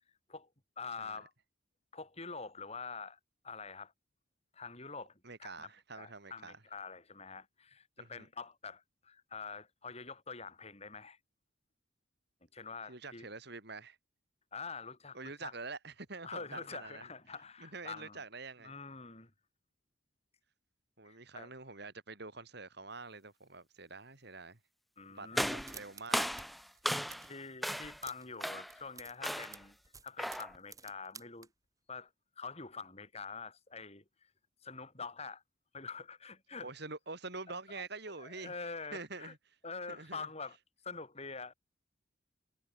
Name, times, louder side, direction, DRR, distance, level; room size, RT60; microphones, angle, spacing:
voice 1, 0.8-1.3 1.9-3.9 4.5-11.2 12.5-13.3 14.5-15.5 16.2-18.2 18.6-19.3 21.0-21.5 25.0-25.4 27.3-29.8 30.0-31.5 31.9-32.1 32.4-34.0 34.6-35.4 35.7-36.7 37.5-39.3 39.6-40.6 40.8-41.5, left 4 dB, 30° left, 5.9 m, -46 dB
voice 2, 5.2-6.6 8.0-8.3 12.9-14.0 15.1-17.1 17.6-18.7 21.0-24.6 25.1-26.3 36.6-38.5 38.9-39.4 39.9-40.3, right 3 dB, 55° right, 3.3 m, -46 dB
sound 1, 25.3-27.3 27.6-28.0 28.4-28.8 29.2-29.6 30.2-30.6, equal, ahead, 0.6 m, -36 dB
sound 2, 25.5-26.5 26.7-27.4 27.7-28.4 28.6-31.5, right 5 dB, 15° right, 6.2 m, -52 dB
head